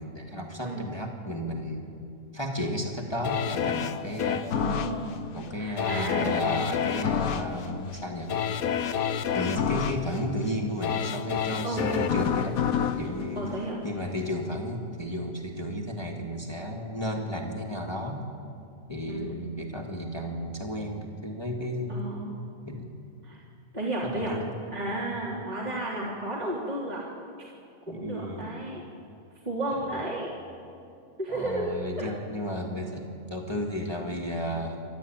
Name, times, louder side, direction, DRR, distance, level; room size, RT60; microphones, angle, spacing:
voice 1, 0.0-1.9 2.3-4.5 5.3-8.3 9.3-12.6 12.9-13.4 13.8-18.2 18.9-22.0 22.7-22.9 24.0-24.5 27.9-28.6 31.3-34.8, equal, 20° left, 0 dB, 2.0 m, -33 dB
sound 1, 3.2-14.2 14.6-14.7, left 8 dB, 80° left, 1.3 m, -29 dB
voice 2, 4.5-5.1 5.5-6.3 11.6-12.1 13.3-13.8 19.1-19.5 21.9-22.3 23.2-23.4 23.7-24.4 24.7-27.1 27.9-28.8 29.4-30.3 31.2-31.7 32.0-32.1, right 1 dB, 30° right, -5 dB, 3.2 m, -32 dB
28.5 x 13.0 x 9.0 m, 2.5 s
omnidirectional pair, 1.5 m